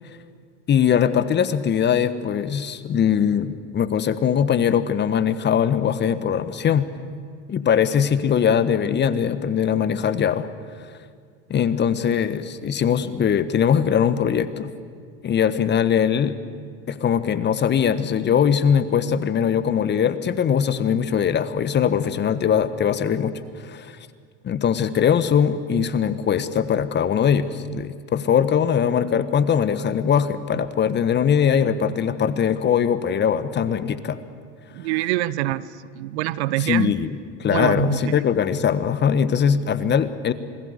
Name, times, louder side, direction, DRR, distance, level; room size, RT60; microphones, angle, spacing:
voice 1, 0.7-6.9 7.5-10.5 11.5-14.7 15.2-16.3 16.9-23.3 23.6-24.0 24.4-34.2 36.6-37.1 37.4-40.3, left 8 dB, 30° left, 13 dB, 1.4 m, -21 dB
voice 2, 34.7-35.7 36.0-36.9 37.5-38.1, right 16 dB, 60° right, 18 dB, 0.9 m, -24 dB
27.0 x 21.0 x 8.2 m, 2.1 s
hypercardioid pair, 90°, 37 cm